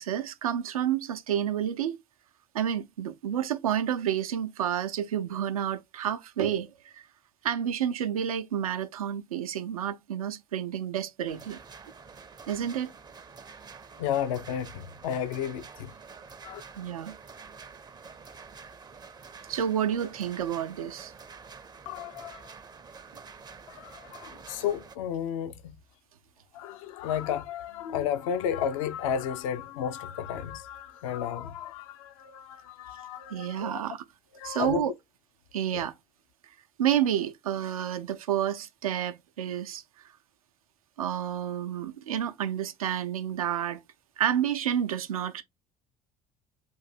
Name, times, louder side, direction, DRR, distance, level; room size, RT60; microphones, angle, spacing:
voice 1, 0.0-2.0 2.5-7.0 7.4-11.6 12.5-12.9 16.8-17.1 19.5-21.1 33.3-34.0 34.4-34.9 35.5-35.9 36.8-39.8 41.0-43.8 44.2-45.4, right 10 dB, 75° right, 0.5 m, -30 dB
sound 1, 11.3-25.0, right 5 dB, 20° right, 0.5 m, -48 dB
voice 2, 14.0-16.0 16.4-16.6 21.9-22.5 23.7-25.8 26.5-33.8 34.3-34.8 35.7-35.9, left 9 dB, 65° left, 0.5 m, -33 dB
3.8 x 2.6 x 4.1 m
figure-of-eight pair, 55°, 18 cm